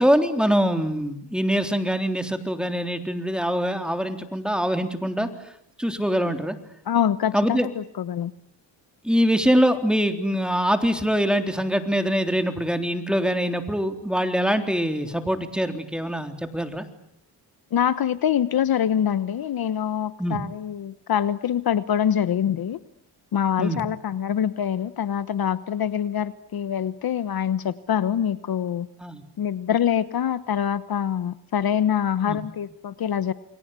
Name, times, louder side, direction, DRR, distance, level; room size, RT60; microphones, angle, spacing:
voice 1, 0.0-5.3 5.8-6.6 7.3-7.7 9.0-16.8 20.2-20.4 23.6-23.8 29.0-29.2 32.3-32.4, equal, ahead, 6 dB, 3.7 m, -23 dB
voice 2, 6.9-8.3 17.7-22.8 23.3-28.9 29.4-33.3, left 9 dB, 60° left, 14 dB, 1.2 m, -25 dB
29.5 x 22.5 x 8.3 m, 0.72 s
cardioid pair, 90°, 42 cm